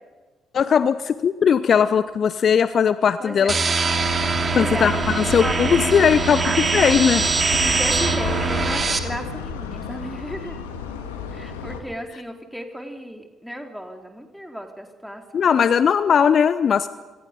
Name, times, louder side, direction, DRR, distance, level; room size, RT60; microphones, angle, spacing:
voice 1, 0.5-3.5 4.6-7.2 15.3-16.9, left 7 dB, 45° left, 14 dB, 0.9 m, -19 dB
sound 1, 3.5-9.0, right 4 dB, 35° right, 2.7 m, -23 dB
sound 2, 3.9-11.8, left 6 dB, 75° left, 2.4 m, -32 dB
voice 2, 4.5-5.9 7.6-10.6 11.3-15.5, equal, ahead, 3 dB, 4.0 m, -34 dB
27.0 x 26.0 x 5.3 m, 1.3 s
figure-of-eight pair, 45°, 0 cm